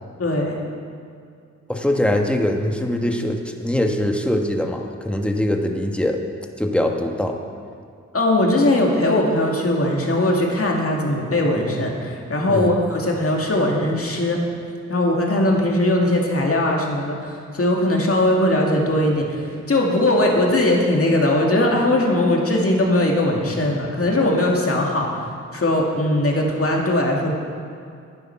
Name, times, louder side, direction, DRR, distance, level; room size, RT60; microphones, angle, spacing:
voice 1, 0.2-0.6 8.1-14.4 14.9-25.1 25.5-27.3, left 1 dB, 50° left, -1 dB, 2.2 m, -20 dB
voice 2, 1.7-6.2 6.6-7.4 12.5-12.7, left 1 dB, 5° left, 3 dB, 1.3 m, -22 dB
10.5 x 9.9 x 5.8 m, 2.4 s
cardioid pair, 60°, 29 cm